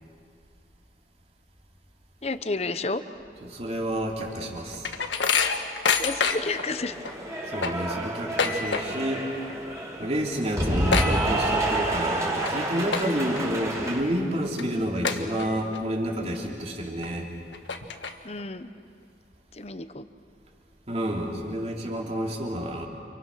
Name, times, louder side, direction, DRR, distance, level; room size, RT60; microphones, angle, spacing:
voice 1, 2.2-3.0 6.0-6.9 14.7-15.0 18.2-18.7 19.5-20.1, left 3 dB, 35° left, 11 dB, 0.9 m, -31 dB
voice 2, 3.4-4.9 7.5-9.3 10.0-17.3 20.9-22.9, equal, 35° right, 0 dB, 3.2 m, -29 dB
sound 1, 4.2-6.6 7.0-7.1 7.4-9.1 9.4-9.8 10.1-10.2 10.4-11.8 12.3-12.5 12.9-13.4 13.9-14.0 14.6-14.7 15.0-15.8 16.2-16.3 17.0-17.1 17.5-18.4, left 5 dB, 85° left, 1.5 m, -27 dB
Cheering / Applause, 6.3-14.0, right 1 dB, 15° right, 4.4 m, -29 dB
29.5 x 27.5 x 6.3 m, 2.3 s
head